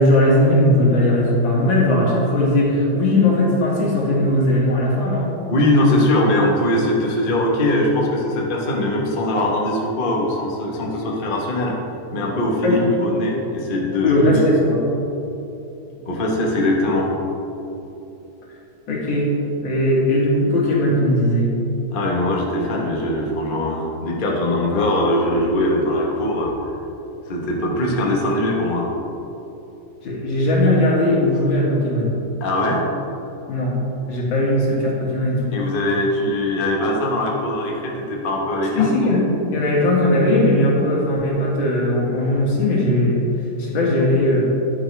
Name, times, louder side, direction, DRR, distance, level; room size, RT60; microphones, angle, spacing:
voice 1, 0.0-5.3 12.6-12.8 14.0-14.8 18.9-21.5 30.0-32.1 33.5-33.8 34.1-35.6 38.8-39.2 39.5-43.2 43.6-44.4, left 1 dB, 75° left, -4 dB, 2.7 m, -18 dB
voice 2, 5.5-11.8 12.1-14.4 16.0-17.1 21.9-26.8 27.2-28.9 32.4-32.9 35.5-38.9, left 1 dB, 30° left, -2 dB, 1.1 m, -21 dB
10.5 x 9.5 x 3.3 m, 2.9 s
omnidirectional pair, 2.2 m